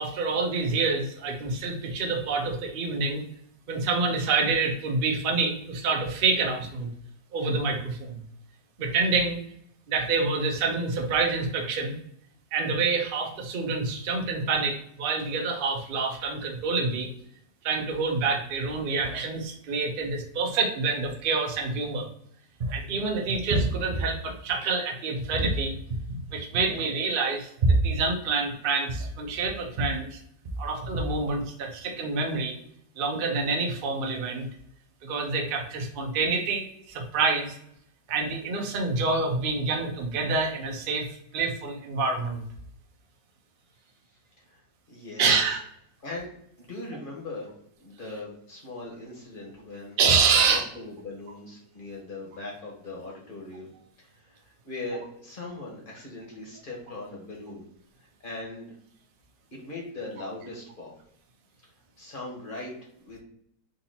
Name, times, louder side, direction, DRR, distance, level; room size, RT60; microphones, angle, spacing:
voice 1, 0.0-3.2 3.7-6.9 7.3-8.2 8.8-9.4 9.9-12.0 12.5-17.1 17.6-22.1 22.6-25.7 26.1-30.2 30.6-32.6 33.0-34.5 35.0-37.6 38.1-42.4 45.2-45.6 50.0-50.6, right 4 dB, 55° right, 2 dB, 0.6 m, -27 dB
voice 2, 44.9-45.4 46.0-46.3 46.6-47.5 47.8-53.7 54.0-57.6 58.2-58.7 59.5-60.9 62.0-63.2, left 2 dB, 30° left, -3 dB, 1.3 m, -39 dB
3.9 x 2.8 x 4.0 m, 0.70 s
omnidirectional pair, 1.9 m